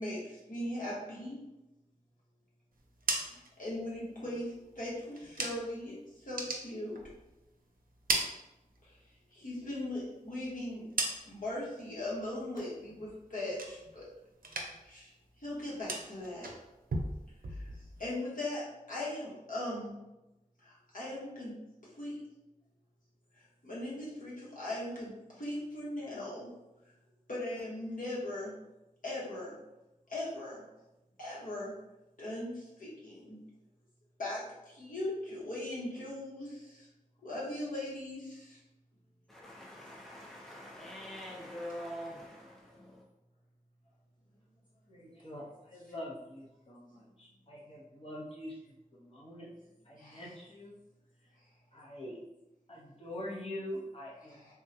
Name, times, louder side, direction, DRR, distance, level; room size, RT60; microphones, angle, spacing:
voice 1, 0.0-1.4 3.3-7.0 8.8-9.0 9.3-10.8 11.2-14.0 14.8-15.1 15.4-16.5 17.5-20.0 20.6-21.5 21.9-22.2 23.3-26.5 27.3-28.5 29.0-29.6 30.1-30.6 31.2-31.7 32.2-33.4 34.2-36.9 37.2-38.6 40.4-40.5 45.1-45.2 50.0-50.3 54.3-54.5, left 1 dB, 75° left, -7 dB, 1.1 m, -39 dB
sound 1, 2.8-5.9 6.2-7.5 7.8-9.1 9.5-11.6 12.0-12.4 12.8-14.1 14.4-15.0 15.2-18.1, right 2 dB, 90° right, 0.4 m, -39 dB
voice 2, 39.3-43.0, equal, ahead, -3 dB, 0.6 m, -45 dB
voice 3, 44.9-49.5 49.9-50.7 51.7-52.2 52.7-54.5, left 1 dB, 45° left, -4 dB, 0.8 m, -44 dB
3.5 x 2.1 x 2.7 m, 0.95 s
wide cardioid pair, 55°, 14 cm